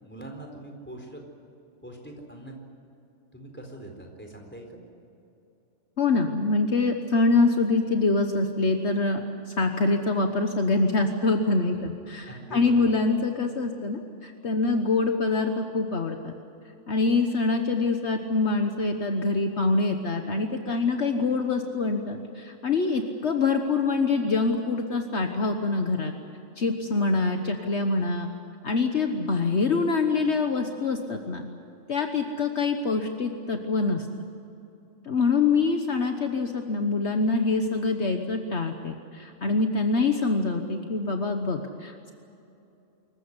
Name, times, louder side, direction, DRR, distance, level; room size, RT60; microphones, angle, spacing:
voice 1, 0.0-1.2 1.8-2.5 3.3-4.8 12.3-12.9, right 1 dB, 10° left, 2 dB, 4.2 m, -42 dB
voice 2, 6.0-9.3 9.6-16.3 16.9-26.1 26.6-28.3 28.6-31.5 31.9-34.1 35.1-42.1, left 3 dB, 60° left, 5 dB, 1.5 m, -25 dB
26.0 x 15.0 x 9.8 m, 2.8 s
omnidirectional pair, 1.3 m